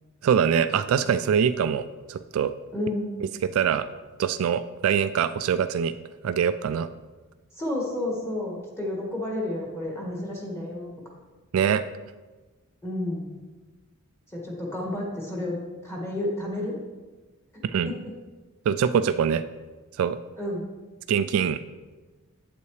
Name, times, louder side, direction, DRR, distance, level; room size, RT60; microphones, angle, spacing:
voice 1, 0.2-2.5 3.4-3.9 4.2-5.9 6.2-6.9 11.5-11.8 17.7-17.9 18.7-19.4 20.0-20.2 21.1-21.6, right 7 dB, 70° right, 12 dB, 0.3 m, -23 dB
voice 2, 2.7-3.1 7.6-10.9 12.8-13.2 14.3-15.5 15.8-16.7 17.8-18.1 20.4-20.7, left 1 dB, 10° left, -3 dB, 1.5 m, -31 dB
8.4 x 8.1 x 3.2 m, 1.3 s
head